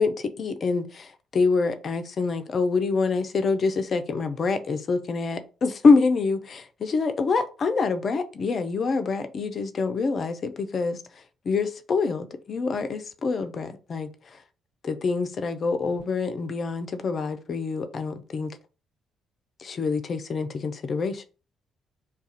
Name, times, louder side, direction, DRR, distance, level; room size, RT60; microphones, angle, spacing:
voice 1, 0.0-11.0 11.4-14.4 14.8-18.6 19.6-21.2, left 4 dB, 45° left, 0.4 m, -26 dB
2.4 x 2.3 x 4.0 m
figure-of-eight pair, 45°, 0 cm